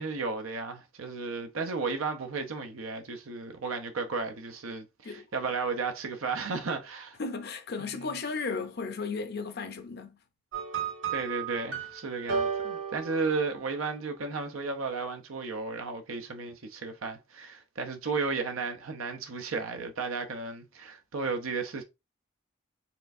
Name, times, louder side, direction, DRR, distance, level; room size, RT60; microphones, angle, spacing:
voice 1, 0.0-7.2 7.8-8.2 11.1-21.8, right 4 dB, 80° right, 0.7 m, -34 dB
voice 2, 7.2-10.2, left 4 dB, 50° left, 0.6 m, -35 dB
sound 1, 10.5-13.9, right 6 dB, 60° right, 1.7 m, -34 dB
4.3 x 3.3 x 2.6 m
head